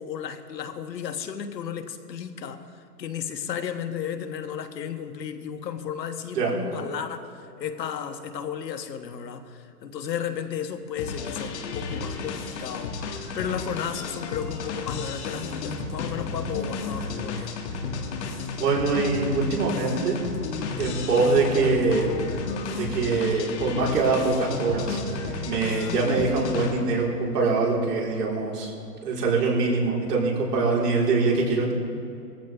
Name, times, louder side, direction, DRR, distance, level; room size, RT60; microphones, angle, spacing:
voice 1, 0.0-17.5, left 8 dB, 90° left, 7 dB, 1.4 m, -34 dB
sound 1, 11.0-27.1, left 4 dB, 45° left, 1.6 m, -32 dB
voice 2, 18.5-20.2 20.8-22.1 22.7-25.0 25.4-28.7 29.0-31.7, right 3 dB, 75° right, -3 dB, 4.3 m, -23 dB
19.0 x 14.5 x 3.5 m, 2.6 s
hypercardioid pair, 170°, 49 cm